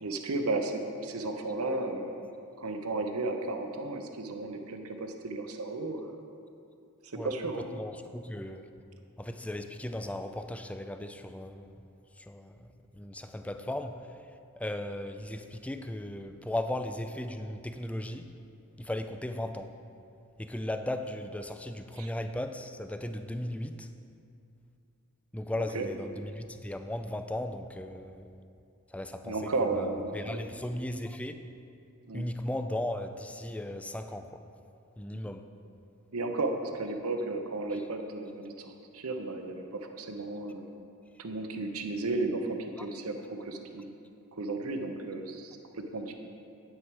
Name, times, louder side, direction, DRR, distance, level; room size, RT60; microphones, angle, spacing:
voice 1, 0.0-2.1 2.6-6.1 7.0-7.6 22.0-22.1 25.7-25.9 29.2-30.4 32.1-32.2 36.1-40.7 41.2-43.9 44.3-46.1, right 2 dB, 75° right, 5 dB, 0.8 m, -34 dB
voice 2, 7.7-8.7 9.2-11.8 12.2-18.3 18.8-19.7 20.4-23.9 25.3-28.3 28.9-31.4 32.1-34.4 35.0-35.4 42.8-42.9, left 1 dB, 5° left, 8 dB, 0.4 m, -37 dB
9.7 x 9.0 x 4.7 m, 2.6 s
head